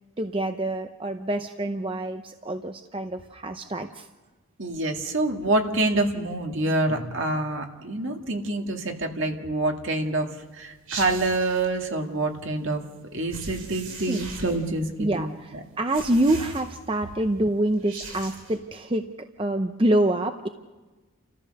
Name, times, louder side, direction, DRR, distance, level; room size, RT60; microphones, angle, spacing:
voice 1, 0.2-4.1 14.1-14.3 15.0-19.1 19.4-20.5, right 1 dB, 25° right, 7 dB, 0.7 m, -26 dB
voice 2, 4.6-12.8 13.1-15.3, right 2 dB, 60° right, 3 dB, 2.2 m, -26 dB
sound 1, 10.9-11.7 13.3-14.7 15.9-17.0 17.7-18.6, right 3 dB, 90° right, 6.4 m, -39 dB
29.5 x 14.5 x 6.6 m, 1.3 s
head